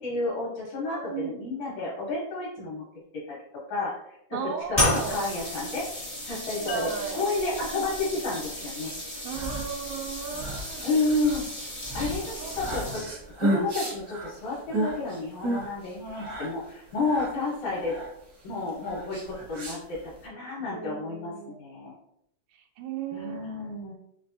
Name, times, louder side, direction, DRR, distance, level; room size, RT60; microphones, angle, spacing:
voice 1, 0.0-2.8 3.3-3.4 3.7-3.9 4.3-4.4 4.7-5.9 6.3-6.8 7.1-8.9 10.8-11.5 11.9-13.0 13.4-18.0 18.4-21.3 21.6-21.9 23.1-23.9, left 3 dB, 70° left, -5 dB, 2.3 m, -30 dB
voice 2, 0.8-1.4 4.3-5.3 6.7-7.3 9.2-10.9 12.3-12.8 18.8-19.2 20.7-21.6 22.5-23.7, right 7 dB, 85° right, 2 dB, 2.1 m, -36 dB
sound 1, 4.7-13.3, left 1 dB, 25° left, 0.7 m, -33 dB
sound 2, 6.7-10.1, right 2 dB, 85° left, 2.2 m, -41 dB
sound 3, 9.1-20.3, right 1 dB, 60° right, 0.9 m, -34 dB
5.1 x 3.2 x 2.6 m, 0.76 s
omnidirectional pair, 3.6 m